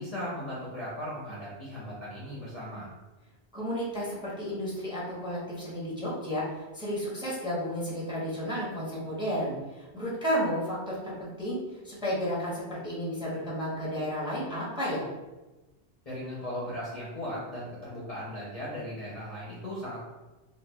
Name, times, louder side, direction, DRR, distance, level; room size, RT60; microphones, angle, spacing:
voice 1, 0.0-2.9 16.0-20.0, equal, 40° left, -8 dB, 0.7 m, -37 dB
voice 2, 3.5-11.6 11.8-15.0, equal, 5° right, -7 dB, 0.8 m, -32 dB
4.0 x 2.2 x 2.3 m, 1.1 s
omnidirectional pair, 1.1 m